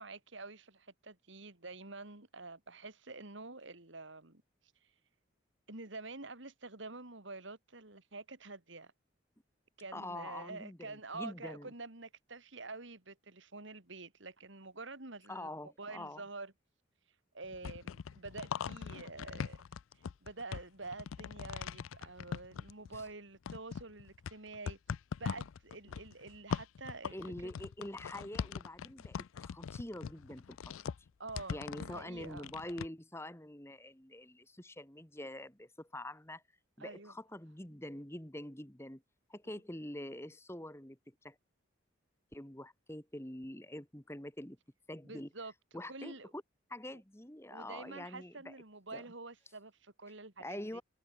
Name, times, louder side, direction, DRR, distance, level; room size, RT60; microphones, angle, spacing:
voice 1, 0.0-4.4 5.7-8.9 9.8-15.5 15.8-16.5 17.3-19.6 19.9-24.8 25.2-27.2 27.4-27.5 31.2-32.5 36.8-37.1 45.0-45.5 45.9-46.3 47.5-50.8, right 3 dB, 65° right, 2.8 m, -47 dB
voice 2, 9.9-11.7 15.3-16.2 22.9-23.0 27.1-30.4 31.5-36.4 36.8-39.0 39.3-41.4 42.3-44.6 44.9-45.3 45.7-46.4 46.7-48.5 48.9-49.0 50.4-50.8, left 1 dB, 10° left, 2.0 m, -45 dB
sound 1, 17.4-23.1 23.5-32.9, left 6 dB, 90° left, 0.4 m, -41 dB
head